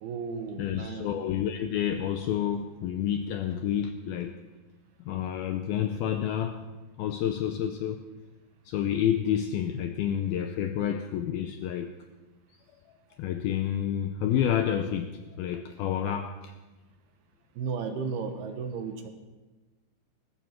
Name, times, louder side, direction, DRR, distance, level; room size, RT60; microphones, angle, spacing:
voice 1, 0.0-1.1 17.6-19.1, right 5 dB, 70° right, 6 dB, 2.9 m, -34 dB
voice 2, 0.6-4.4 5.1-6.6 7.0-8.0 8.7-11.9 13.2-16.5, left 9 dB, 80° left, 7 dB, 2.2 m, -29 dB
19.5 x 15.0 x 4.4 m, 1.2 s
omnidirectional pair, 5.1 m